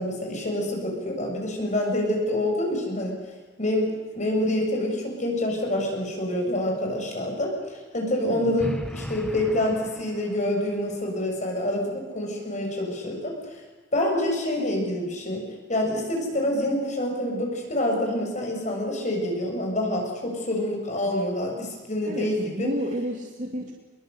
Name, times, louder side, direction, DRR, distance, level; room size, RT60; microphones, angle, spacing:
voice 1, 0.0-3.2 3.6-13.3 13.9-15.4 15.7-22.7, left 1 dB, 45° left, 1 dB, 7.1 m, -27 dB
voice 2, 8.3-8.8 22.0-23.7, equal, 45° right, 0 dB, 2.8 m, -31 dB
sound 1, 8.6-10.6, equal, 5° left, 1.7 m, -36 dB
25.5 x 22.0 x 8.2 m, 1.3 s
head